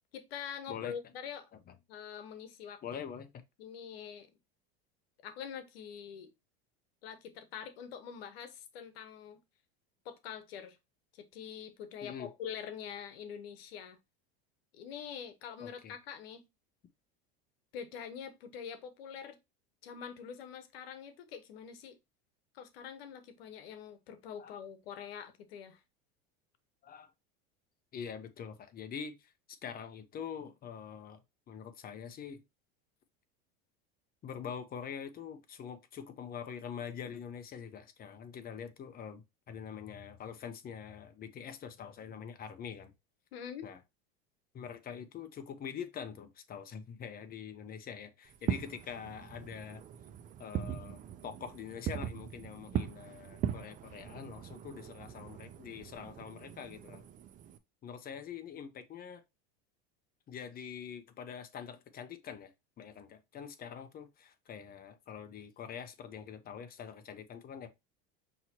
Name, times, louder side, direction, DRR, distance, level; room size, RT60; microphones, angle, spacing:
voice 1, 0.1-1.5 1.9-2.8 3.6-4.4 5.2-6.3 7.0-9.4 10.0-10.8 11.1-14.0 14.7-16.5 17.7-19.4 19.8-22.0 22.5-25.8 43.3-43.7, left 8 dB, 90° left, 1.0 m, -45 dB
voice 2, 2.8-3.3 12.0-12.3 15.6-15.9 24.4-24.6 26.8-27.1 27.9-31.2 31.5-32.4 34.2-42.9 43.6-43.8 44.5-49.8 50.4-57.1 57.8-59.2 60.3-62.5 62.8-67.7, left 7 dB, 30° left, 0.8 m, -44 dB
Fireworks, 48.3-57.6, right 9 dB, 30° right, 0.4 m, -40 dB
5.6 x 3.0 x 2.8 m
supercardioid pair, 120°, 29 cm